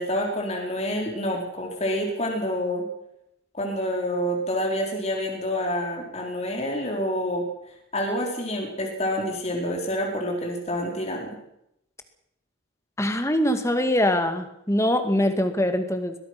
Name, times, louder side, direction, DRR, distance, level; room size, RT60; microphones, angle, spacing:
voice 1, 0.0-2.9 3.5-7.5 7.9-11.4, equal, 30° left, 0 dB, 4.3 m, -27 dB
voice 2, 13.0-16.2, left 1 dB, 15° left, 7 dB, 2.1 m, -23 dB
22.5 x 20.0 x 6.1 m, 0.78 s
head